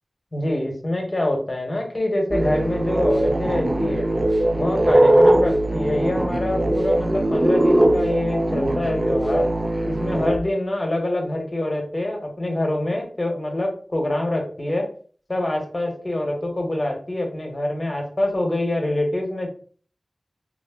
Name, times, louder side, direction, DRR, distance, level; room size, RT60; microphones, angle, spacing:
voice 1, 0.3-4.1 4.5-9.5 9.8-14.9 15.3-19.5, left 1 dB, 40° left, 1 dB, 1.0 m, -25 dB
sound 1, 2.3-10.4, right 1 dB, 40° right, 0.3 m, -20 dB
2.5 x 2.0 x 3.5 m, 0.43 s
wide cardioid pair, 55°, 0 cm